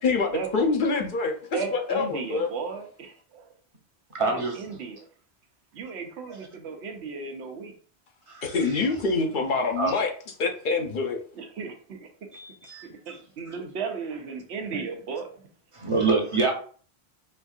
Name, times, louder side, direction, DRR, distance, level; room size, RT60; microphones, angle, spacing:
voice 1, 0.0-1.3 1.7-2.5 8.4-10.1 10.4-11.2, left 4 dB, 55° left, 3 dB, 0.8 m, -25 dB
voice 2, 1.5-3.4 4.2-5.1 5.7-7.7 11.4-12.1 13.1-15.3, right 5 dB, 80° right, 4 dB, 1.0 m, -35 dB
voice 3, 4.1-4.8 6.3-6.5 8.3-8.7 9.8-9.9 12.3-12.9 13.5-13.6 15.7-16.5, right 3 dB, 35° right, 1 dB, 0.7 m, -27 dB
4.2 x 2.6 x 2.3 m, 0.43 s
omnidirectional pair, 1.1 m